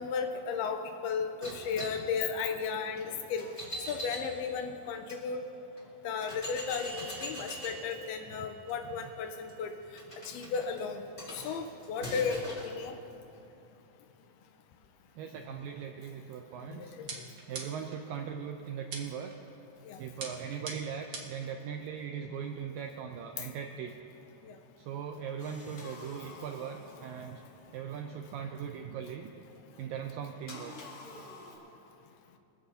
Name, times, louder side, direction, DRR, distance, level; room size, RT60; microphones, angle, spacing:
voice 1, 0.0-3.5 3.9-5.4 6.0-9.7 10.3-11.0 11.3-13.0 16.7-17.1 19.9-20.0 24.5-24.6, left 6 dB, 85° left, 6 dB, 2.6 m, -34 dB
sound 1, 1.4-5.2 5.8-5.9 6.2-12.7, equal, 15° left, 3.4 m, -44 dB
voice 2, 15.2-16.9 17.5-19.3 20.0-24.0 24.8-27.4 27.7-29.3 29.8-30.8, right 7 dB, 85° right, 4 dB, 1.9 m, -39 dB
sound 2, 17.1-18.0 18.9-19.4 20.2-21.5, right 4 dB, 70° right, 1.2 m, -42 dB
sound 3, 25.4-27.9 30.5-31.6, left 3 dB, 50° left, 3.1 m, -49 dB
23.0 x 15.5 x 2.8 m, 2.8 s
omnidirectional pair, 4.7 m